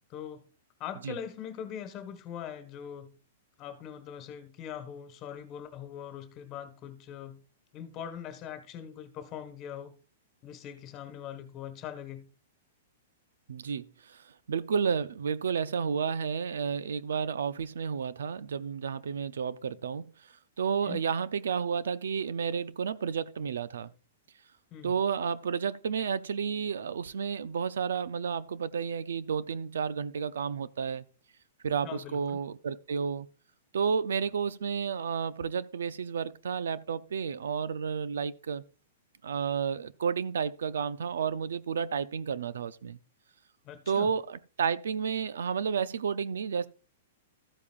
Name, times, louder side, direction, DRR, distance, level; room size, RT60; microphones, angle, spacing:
voice 1, 0.1-0.4 0.8-3.1 3.6-7.4 7.7-9.9 10.4-12.2 20.8-21.1 24.7-24.9 31.8-32.4 43.6-44.1, left 9 dB, 30° left, 1.4 m, -42 dB
voice 2, 13.5-20.1 20.6-23.9 24.8-31.0 31.6-33.3 33.7-38.6 39.2-43.0 43.9-46.7, right 6 dB, 90° right, 0.5 m, -31 dB
13.5 x 8.5 x 2.4 m
hypercardioid pair, 150°, 0 cm